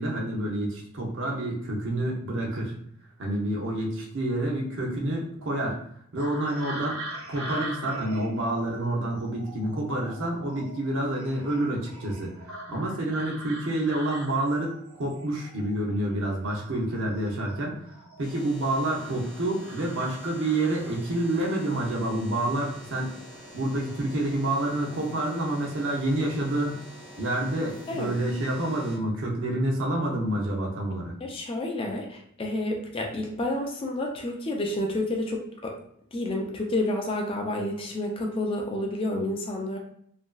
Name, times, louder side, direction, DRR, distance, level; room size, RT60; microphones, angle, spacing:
voice 1, 0.0-2.7 3.2-5.8 6.1-7.0 7.3-12.3 12.7-17.8 18.2-23.1 23.5-26.8 27.2-31.1, right 1 dB, 60° right, -1 dB, 0.7 m, -28 dB
sound 1, 6.2-16.2 16.5-18.4 19.0-21.2 22.4-22.7 23.1-23.6 23.9-24.2, right 1 dB, 85° right, 0.9 m, -42 dB
sound 2, 18.2-29.0, equal, ahead, 0.7 m, -46 dB
voice 2, 31.2-35.8 36.1-39.8, left 1 dB, 25° left, 1 dB, 0.4 m, -30 dB
2.9 x 2.5 x 2.3 m, 0.67 s
head